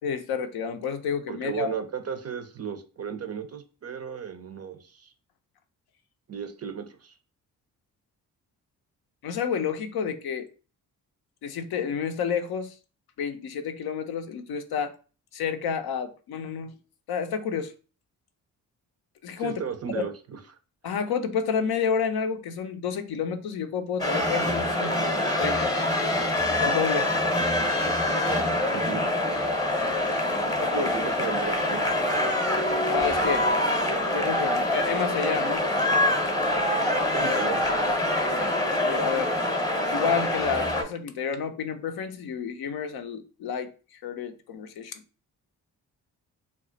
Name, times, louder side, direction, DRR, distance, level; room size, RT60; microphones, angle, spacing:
voice 1, 0.0-1.7 9.2-10.5 11.4-12.8 13.2-14.9 15.3-16.7 17.1-17.7 19.2-19.6 19.9-20.1 20.8-25.7 26.5-27.1 30.3-30.9 32.9-33.5 34.1-35.7 38.8-39.3 39.9-45.0, left 6 dB, 60° left, 0.5 m, -30 dB
voice 2, 1.3-5.1 6.3-7.1 19.4-20.4 28.7-29.1 30.7-31.9 36.8-37.8, right 7 dB, 35° right, 0.5 m, -35 dB
sound 1, 24.0-40.8, left 1 dB, 10° left, 0.8 m, -25 dB
2.3 x 2.1 x 3.8 m
hypercardioid pair, 40°, 44 cm